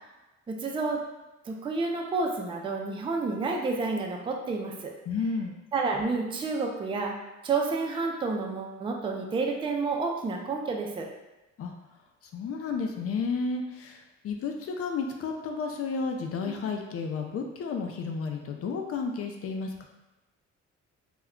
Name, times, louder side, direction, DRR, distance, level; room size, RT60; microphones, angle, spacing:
voice 1, 0.5-1.0 1.5-4.9 5.7-7.2 7.4-11.1 16.5-16.6, right 3 dB, 20° right, 1 dB, 0.4 m, -30 dB
voice 2, 5.1-5.6 11.6-11.7 12.3-19.8, left 4 dB, 50° left, 3 dB, 0.4 m, -32 dB
2.2 x 2.2 x 3.6 m, 1.0 s
cardioid pair, 90°, 30 cm